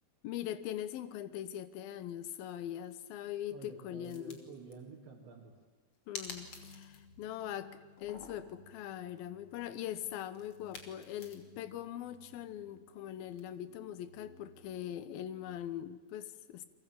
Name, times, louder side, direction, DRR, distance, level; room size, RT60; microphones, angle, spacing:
voice 1, 0.2-4.4 6.1-16.7, left 11 dB, 70° left, 13 dB, 2.7 m, -42 dB
sound 1, 2.1-2.4 2.8-3.0 4.0-4.7 6.1-7.1 7.4-7.5 7.9-8.6 10.3-11.6 13.4-13.5, left 4 dB, 35° left, 3.0 m, -49 dB
voice 2, 3.5-5.6, right 5 dB, 90° right, -2 dB, 4.7 m, -50 dB
sound 2, 6.2-15.6, left 3 dB, 90° left, 0.7 m, -60 dB
29.5 x 22.5 x 8.6 m, 1.2 s
omnidirectional pair, 5.0 m